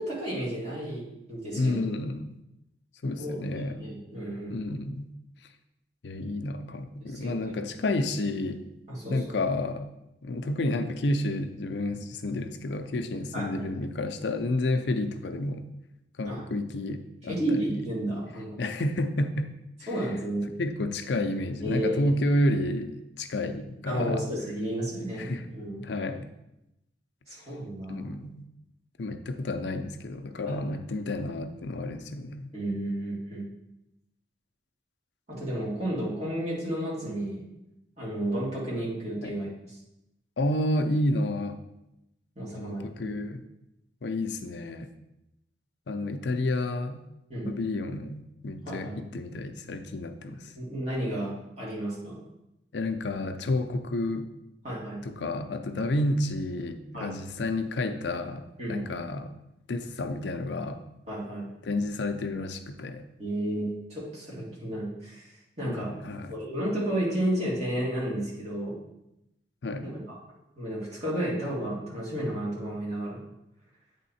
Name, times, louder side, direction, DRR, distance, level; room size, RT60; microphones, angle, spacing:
voice 1, 0.0-1.9 3.2-4.5 7.0-7.5 8.9-9.4 11.9-12.0 13.3-13.7 16.2-16.4 17.2-18.6 19.9-20.5 21.6-22.0 23.9-25.8 27.3-28.1 30.5-30.6 32.5-33.5 35.3-37.5 38.0-39.8 42.4-43.1 47.3-47.5 48.7-49.0 50.6-52.2 54.6-55.0 56.9-57.1 58.6-58.8 61.1-61.5 63.2-65.9 66.3-68.8 70.1-70.2 70.6-73.2, right 1 dB, 40° right, -7 dB, 2.3 m, -32 dB
voice 2, 1.6-2.4 3.0-3.8 4.5-5.1 6.0-8.6 9.1-9.9 10.2-15.7 16.2-17.6 18.6-19.5 20.6-24.3 25.2-25.5 25.8-26.3 27.9-28.4 29.0-32.5 39.2-39.3 40.4-41.6 42.6-43.4 44.0-44.9 45.9-47.0 47.4-50.5 52.7-54.3 55.0-58.4 58.7-59.3 59.7-60.8 61.6-63.1 65.7-66.4 69.6-69.9, left 2 dB, 75° left, 8 dB, 0.5 m, -30 dB
8.4 x 3.6 x 4.2 m, 0.88 s
head